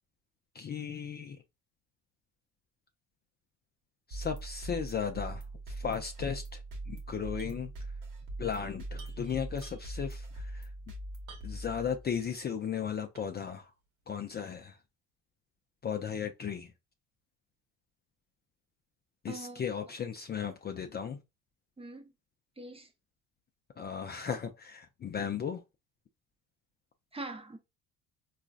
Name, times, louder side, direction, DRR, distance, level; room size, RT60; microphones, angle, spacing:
voice 1, 0.5-1.4 4.1-6.6 6.9-7.7 8.4-10.7 11.4-13.7 14.1-14.8 15.8-16.7 19.2-21.2 23.8-25.6, left 7 dB, 30° left, 0.4 m, -36 dB
sound 1, 4.1-12.3, right 2 dB, 60° right, 1.1 m, -41 dB
sound 2, 7.4-7.6 7.9-8.0 8.9-10.1 11.3-11.8 12.3-12.4 13.1-13.5, right 5 dB, 90° right, 0.9 m, -55 dB
voice 2, 19.3-19.6 21.8-22.1 22.6-22.9 27.1-27.6, right 2 dB, 15° right, 0.7 m, -42 dB
3.8 x 2.4 x 2.4 m
supercardioid pair, 75°, 35 cm